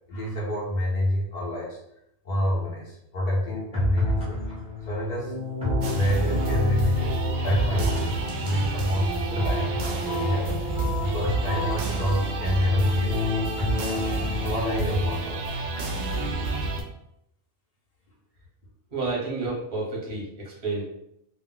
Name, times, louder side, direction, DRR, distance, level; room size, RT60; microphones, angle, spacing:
voice 1, 0.1-1.8 2.2-4.4 4.9-5.3 5.9-9.8 10.1-10.6 11.0-13.5 14.4-15.6, equal, 50° left, -5 dB, 0.5 m, -28 dB
sound 1, 3.5-15.3, left 1 dB, 5° right, 0.5 m, -30 dB
sound 2, 5.8-16.8, right 2 dB, 60° right, 0.7 m, -30 dB
voice 2, 18.9-20.8, right 3 dB, 30° right, -4 dB, 0.9 m, -30 dB
2.4 x 2.1 x 3.7 m, 0.78 s
omnidirectional pair, 1.4 m